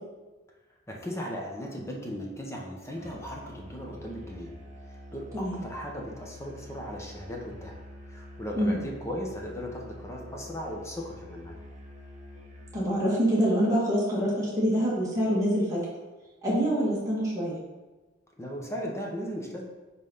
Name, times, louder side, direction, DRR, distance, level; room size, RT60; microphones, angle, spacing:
voice 1, 0.9-4.5 4.9-7.8 8.1-11.6 18.4-19.6, equal, 15° left, -1 dB, 1.1 m, -37 dB
Musical instrument, 3.0-12.9, left 1 dB, 40° right, 1.3 m, -46 dB
voice 2, 12.7-15.8 16.4-17.6, equal, 20° right, -8 dB, 2.0 m, -25 dB
5.6 x 4.1 x 5.6 m, 1.2 s
head